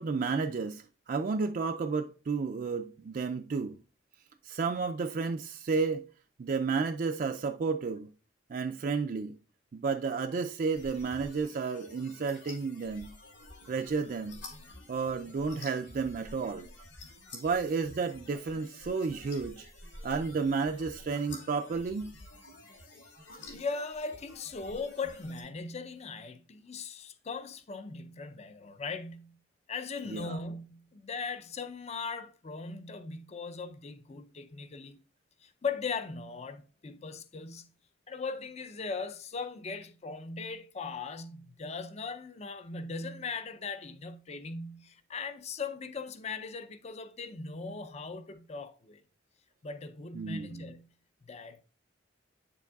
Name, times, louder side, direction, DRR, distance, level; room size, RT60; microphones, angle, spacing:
voice 1, 0.0-3.8 4.4-6.1 6.4-8.1 8.5-9.3 9.7-13.1 13.7-14.4 14.9-16.7 17.3-19.7 20.0-22.1 30.1-30.4 50.1-50.6, right 4 dB, 45° right, 0.4 m, -32 dB
sound 1, 10.7-25.4, left 2 dB, 70° left, 2.5 m, -50 dB
voice 2, 23.5-29.4 29.7-35.0 35.4-37.7 38.1-49.0 49.6-50.9 51.2-51.6, left 4 dB, 35° left, 0.5 m, -39 dB
8.2 x 6.9 x 2.3 m
head